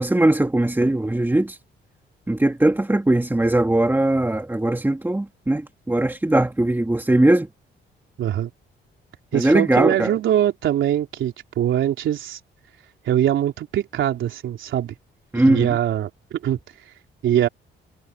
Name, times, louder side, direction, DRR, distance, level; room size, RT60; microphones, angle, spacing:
voice 1, 0.0-1.6 2.3-7.5 9.3-10.1 15.3-15.7, right 1 dB, 10° right, 2.5 m, -20 dB
voice 2, 8.2-8.5 9.3-12.4 13.0-14.9 15.3-16.6 17.2-17.5, right 11 dB, 75° right, 3.7 m, -22 dB
cardioid pair, 90°, 20 cm